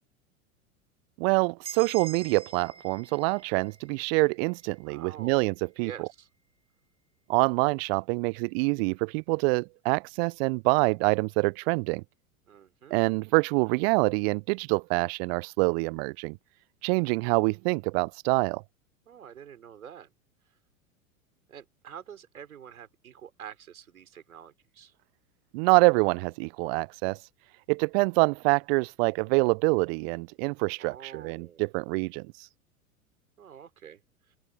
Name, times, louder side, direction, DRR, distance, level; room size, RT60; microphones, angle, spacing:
voice 1, 1.2-6.1 7.3-12.0 12.9-16.4 16.8-18.6 25.5-27.2 27.7-32.5, right 30 dB, 45° right, 0.7 m, -26 dB
sound 1, 1.6-5.5, right 6 dB, 15° right, 5.7 m, -46 dB
voice 2, 4.9-5.5 5.8-6.3 12.5-13.0 19.1-20.1 21.5-24.9 30.8-31.6 33.4-34.0 34.3-34.4, right 9 dB, 75° right, 4.7 m, -47 dB
open air
figure-of-eight pair, 90°, 42 cm